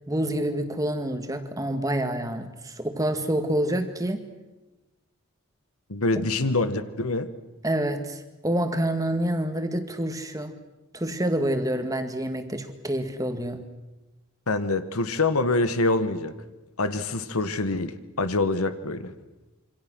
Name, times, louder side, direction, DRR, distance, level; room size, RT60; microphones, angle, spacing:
voice 1, 0.1-4.2 6.2-6.3 7.6-10.6 10.9-13.6, right 1 dB, 15° right, 7 dB, 1.9 m, -27 dB
voice 2, 5.9-7.3 14.5-16.3 16.8-19.1, left 2 dB, 90° left, 11 dB, 1.6 m, -25 dB
26.5 x 25.5 x 6.3 m, 1.1 s
head